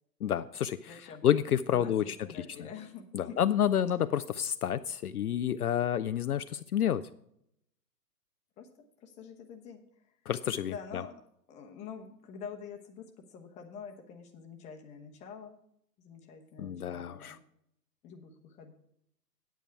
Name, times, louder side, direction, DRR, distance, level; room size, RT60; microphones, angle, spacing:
voice 1, 0.2-2.7 3.1-7.0 10.3-11.0 16.6-17.4, left 10 dB, 65° left, 12 dB, 0.5 m, -30 dB
voice 2, 0.9-1.3 1.7-3.4 8.6-8.7 9.0-9.8 10.7-11.1 11.5-15.5 16.0-17.4 18.0-18.7, left 6 dB, 15° left, 3 dB, 1.0 m, -46 dB
9.2 x 9.1 x 4.5 m, 0.74 s
figure-of-eight pair, 120°, 49 cm